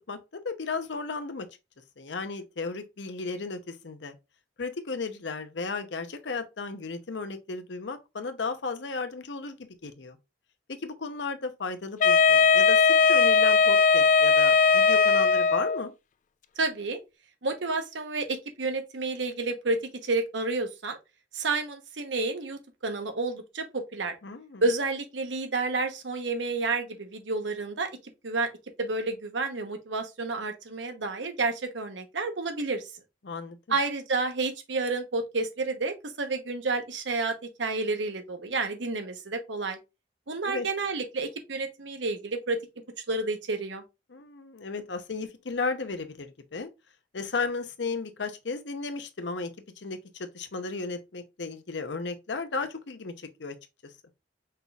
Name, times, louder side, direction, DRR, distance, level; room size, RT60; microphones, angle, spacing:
voice 1, 0.4-1.5 2.0-4.1 4.6-9.6 9.8-10.2 10.7-15.9 24.2-24.6 33.2-33.8 40.4-40.7 44.1-46.7 47.1-50.0 50.3-53.6, left 4 dB, 75° left, 0.8 m, -34 dB
Wind instrument woodwind instrument, 12.0-15.9, left 5 dB, 45° left, 0.3 m, -19 dB
voice 2, 16.6-17.0 17.4-21.0 21.3-24.1 24.6-27.9 28.2-28.5 28.8-32.8 33.7-39.8 40.3-42.6 43.1-43.8, right 3 dB, 80° right, 1.0 m, -30 dB
5.4 x 4.1 x 2.4 m
head